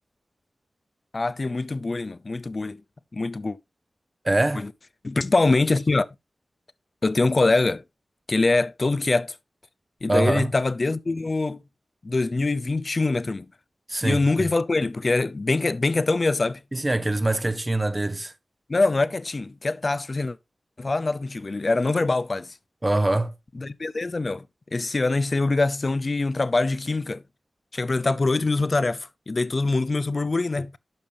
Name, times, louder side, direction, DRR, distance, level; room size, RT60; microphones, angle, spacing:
voice 1, 1.1-2.8 3.1-3.6 4.5-4.7 5.0-6.1 7.0-7.8 8.3-9.4 10.0-11.6 12.0-13.5 14.0-16.6 18.7-20.4 20.8-22.6 23.5-27.2 27.7-30.8, left 3 dB, 50° left, 0.5 m, -24 dB
voice 2, 4.2-4.6 10.1-10.5 13.9-14.2 16.7-18.3 22.8-23.3, right 2 dB, 30° right, 0.7 m, -23 dB
12.0 x 5.4 x 2.7 m
cardioid pair, 45°, 0 cm